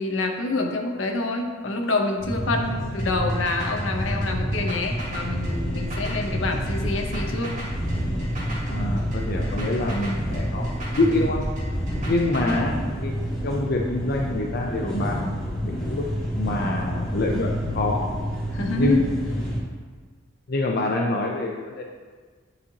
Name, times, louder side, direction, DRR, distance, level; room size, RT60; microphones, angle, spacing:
voice 1, 0.0-7.5 18.5-19.0, left 2 dB, 80° left, 3 dB, 0.9 m, -27 dB
sound 1, 2.2-19.6, equal, 5° left, 1.5 m, -29 dB
sound 2, 3.0-12.8, right 1 dB, 40° right, 1.7 m, -33 dB
voice 2, 8.7-10.7 11.0-11.4 12.1-13.2 13.4-16.1 16.4-18.1 18.7-19.0 20.5-21.8, left 2 dB, 55° left, 0 dB, 0.5 m, -26 dB
9.7 x 4.2 x 2.8 m, 1.5 s
head